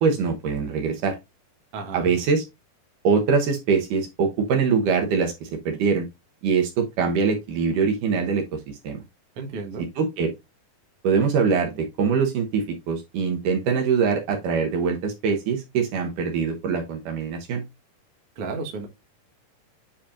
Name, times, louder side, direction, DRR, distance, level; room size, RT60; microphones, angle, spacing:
voice 1, 0.0-1.2 1.9-2.4 3.0-6.1 6.4-9.0 10.0-10.3 11.0-17.6, right 5 dB, 70° right, 2.5 m, -23 dB
voice 2, 1.7-2.1 9.4-9.9 18.4-18.9, right 3 dB, 50° right, 1.9 m, -33 dB
8.5 x 5.2 x 2.5 m
omnidirectional pair, 4.1 m